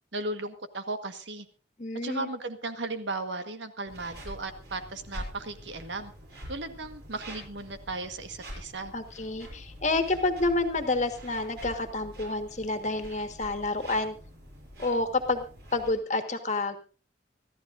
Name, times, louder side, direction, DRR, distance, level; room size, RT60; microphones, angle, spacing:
voice 1, 0.1-1.5 2.0-6.1 6.5-8.9, right 2 dB, 80° right, 8 dB, 1.5 m, -36 dB
voice 2, 1.8-2.3 8.9-14.1 14.8-15.4 15.7-16.8, left 2 dB, 40° left, 7 dB, 1.6 m, -29 dB
sound 1, 3.9-16.0, equal, 60° right, 7.5 m, -45 dB
25.5 x 14.5 x 2.6 m, 0.35 s
head